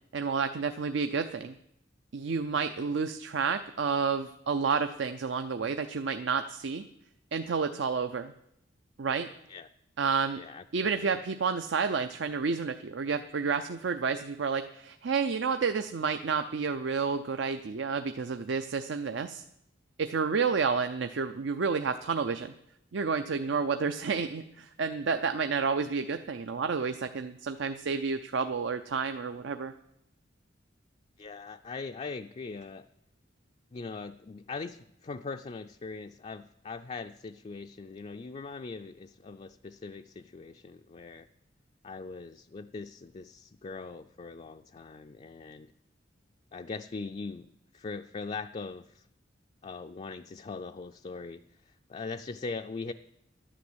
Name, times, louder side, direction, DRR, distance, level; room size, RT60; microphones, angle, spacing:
voice 1, 0.1-1.5 2.1-6.8 7.3-8.3 9.0-9.3 10.0-10.4 10.7-19.4 20.0-22.5 22.9-29.7, right 5 dB, 75° right, 9 dB, 0.5 m, -30 dB
voice 2, 10.3-11.2 31.2-32.9 33.7-41.3 41.8-45.7 46.5-49.1 49.6-52.9, left 4 dB, 35° left, 6 dB, 0.4 m, -41 dB
11.5 x 10.0 x 7.9 m, 0.81 s
head